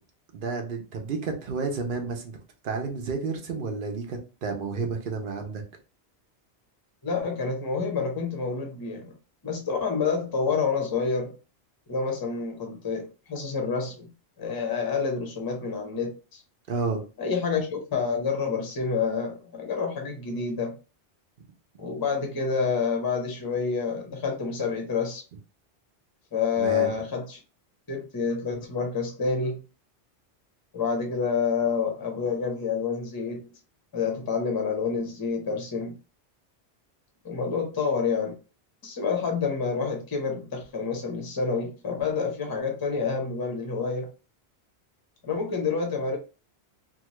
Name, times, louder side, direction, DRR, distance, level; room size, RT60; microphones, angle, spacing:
voice 1, 0.3-2.4 2.6-5.6 16.7-17.0 21.4-21.5 26.6-26.9, right 4 dB, 55° right, 0.8 m, -31 dB
voice 2, 7.0-9.1 9.4-11.3 11.9-14.1 14.4-16.4 17.2-20.8 21.8-25.2 26.3-27.4 27.9-29.6 30.7-33.5 33.9-35.9 37.2-38.3 38.8-44.1 45.2-46.2, left 5 dB, 25° left, 0.6 m, -28 dB
2.7 x 2.3 x 2.9 m
omnidirectional pair, 1.2 m